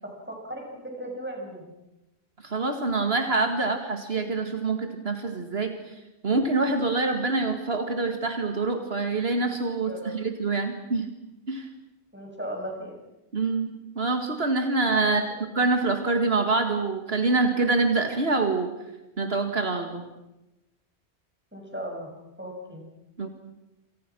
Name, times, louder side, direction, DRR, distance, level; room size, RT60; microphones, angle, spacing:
voice 1, 0.0-1.7 9.8-10.1 12.1-12.9 15.0-15.2 21.5-22.1 22.4-22.8, equal, 10° right, 0 dB, 7.1 m, -36 dB
voice 2, 2.4-5.9 6.2-11.1 11.5-11.7 13.3-15.2 15.6-18.7 19.2-20.0 23.2-23.3, right 3 dB, 70° right, 5 dB, 2.2 m, -25 dB
28.0 x 27.5 x 6.2 m, 0.99 s
omnidirectional pair, 1.1 m